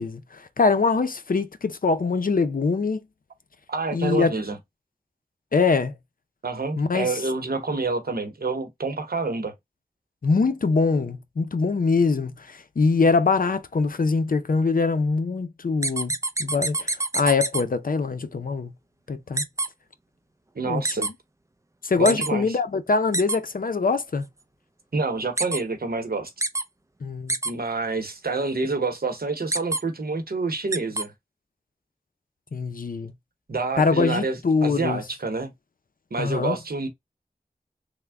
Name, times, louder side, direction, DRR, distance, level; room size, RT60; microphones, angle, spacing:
voice 1, 0.0-3.0 3.9-4.3 5.5-5.9 6.8-7.2 10.2-16.1 16.4-18.7 19.1-19.4 20.6-21.1 21.8-24.3 27.0-27.4 32.5-33.1 33.8-35.0 36.2-36.6, left 4 dB, 65° left, 0.5 m, -23 dB
voice 2, 3.7-4.6 6.4-9.5 20.5-21.1 22.0-22.5 24.9-26.3 27.4-31.1 33.5-35.5 36.1-36.9, right 3 dB, 85° right, 0.8 m, -28 dB
sound 1, 15.8-17.6 19.4-19.7 20.8-21.1 22.0-22.3 23.1-23.4 25.4-25.6 26.4-26.6 27.3-27.5 29.5-29.8 30.7-31.0, right 2 dB, 20° right, 0.4 m, -25 dB
3.5 x 2.1 x 3.4 m
wide cardioid pair, 45°, 15 cm